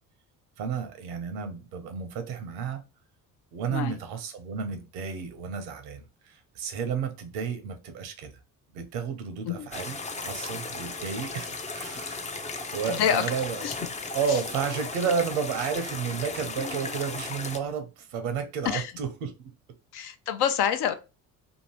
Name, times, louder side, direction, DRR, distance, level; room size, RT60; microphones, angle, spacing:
voice 1, 0.6-2.8 3.5-8.3 8.7-12.2 12.7-13.7 14.1-19.3, right 7 dB, 75° right, 0.8 m, -32 dB
sound 1, 9.7-17.6, left 3 dB, 15° left, 0.4 m, -36 dB
voice 2, 12.9-13.2 13.6-13.7 14.3-14.4 18.6-18.9 19.9-20.9, left 9 dB, 55° left, 0.6 m, -27 dB
2.8 x 2.6 x 3.0 m
hypercardioid pair, 55°, 46 cm